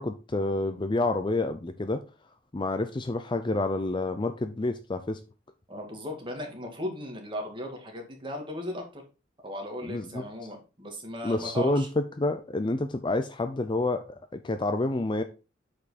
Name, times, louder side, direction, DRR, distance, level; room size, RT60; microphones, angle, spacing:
voice 1, 0.0-2.0 2.5-5.2 9.8-10.2 11.2-15.2, left 2 dB, 25° left, 0.5 m, -28 dB
voice 2, 5.7-9.0 9.4-11.9, equal, 25° right, 2.4 m, -37 dB
8.4 x 5.3 x 4.2 m
head